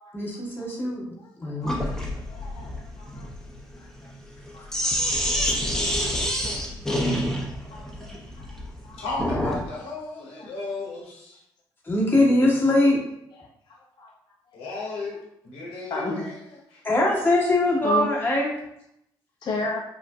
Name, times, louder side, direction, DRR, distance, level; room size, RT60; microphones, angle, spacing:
voice 1, 0.1-1.7 11.8-13.0 16.8-18.6, left 1 dB, 20° left, -4 dB, 1.2 m, -22 dB
voice 2, 1.6-2.0 2.3-3.3 4.5-5.1 5.4-5.5 6.0-6.1 6.4-6.6 6.9-7.0 7.7-7.8 8.4-8.5 8.8-9.0 14.0-14.1 15.9-16.2 17.8-18.1 19.4-19.8, left 3 dB, 50° left, -1 dB, 0.5 m, -33 dB
Sink (filling or washing), 1.6-9.7, equal, 5° left, 0.9 m, -27 dB
voice 3, 9.0-11.4 14.5-15.2 15.4-16.8, left 3 dB, 85° left, -3 dB, 0.9 m, -34 dB
3.9 x 2.5 x 2.3 m, 0.78 s
supercardioid pair, 55°, 10 cm